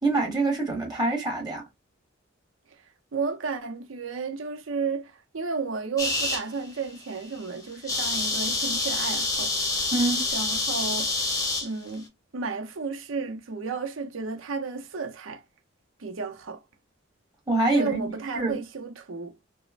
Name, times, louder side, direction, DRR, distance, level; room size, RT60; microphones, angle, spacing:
voice 1, 0.0-1.6 9.9-10.2 17.5-18.6, right 2 dB, 20° right, 1.2 m, -25 dB
voice 2, 3.1-9.5 10.3-11.2 11.6-12.1 12.3-15.4 16.0-16.6 17.7-19.4, right 4 dB, 85° right, 0.7 m, -32 dB
sound 1, 6.0-6.4 7.0-7.2 7.4-7.5 7.7-11.7, left 2 dB, 15° left, 0.7 m, -27 dB
3.5 x 2.0 x 2.4 m
head